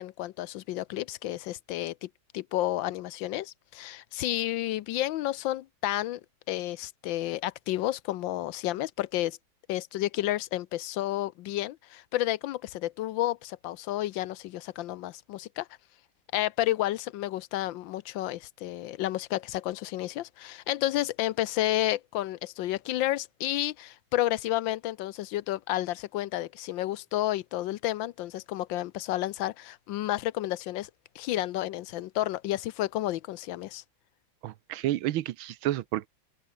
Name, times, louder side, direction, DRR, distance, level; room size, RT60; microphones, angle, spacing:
voice 1, 0.0-2.1 2.3-6.2 6.5-9.4 9.7-15.7 16.3-30.9 31.1-33.8, left 14 dB, 75° left, 1.3 m, -31 dB
voice 2, 34.4-36.1, right 14 dB, 85° right, 1.6 m, -30 dB
open air
omnidirectional pair, 2.2 m